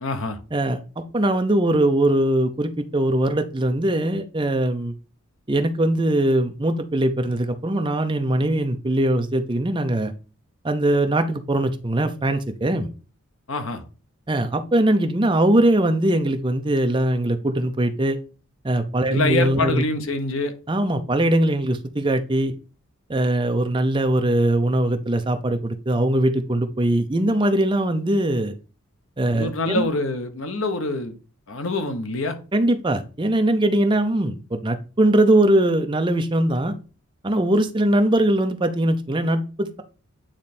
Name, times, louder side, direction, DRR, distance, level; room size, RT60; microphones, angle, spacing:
voice 1, 0.0-0.4 13.5-13.8 19.1-20.5 29.3-31.1 31.5-32.4, left 2 dB, 65° left, 1.0 m, -25 dB
voice 2, 0.5-4.9 5.5-10.1 10.6-12.9 14.3-18.2 18.6-19.8 20.7-22.5 23.1-28.5 29.2-29.9 32.5-36.7 37.2-39.8, right 1 dB, 20° right, 0.6 m, -21 dB
8.8 x 3.2 x 4.2 m
head